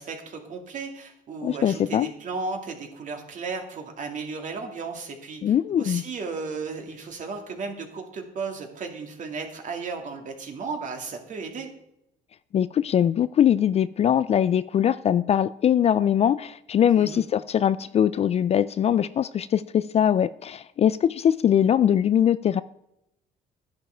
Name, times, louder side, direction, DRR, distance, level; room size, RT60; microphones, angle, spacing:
voice 1, 0.0-11.7 17.0-17.2, right 4 dB, 50° right, 2.3 m, -35 dB
voice 2, 1.4-2.1 5.4-6.0 12.5-22.6, left 9 dB, 40° left, 0.3 m, -22 dB
11.5 x 10.5 x 4.5 m
cardioid pair, 110°, 17 cm